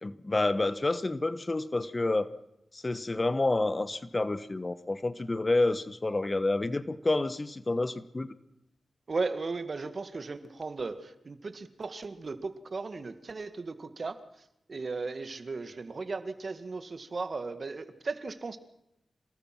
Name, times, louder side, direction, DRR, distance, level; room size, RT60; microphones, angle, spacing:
voice 1, 0.0-2.3 2.7-8.3, left 2 dB, 35° left, 14 dB, 1.3 m, -29 dB
voice 2, 9.1-14.2 14.7-18.6, right 4 dB, 55° right, 10 dB, 1.9 m, -36 dB
27.5 x 19.0 x 6.0 m, 0.84 s
cardioid pair, 45°, 0 cm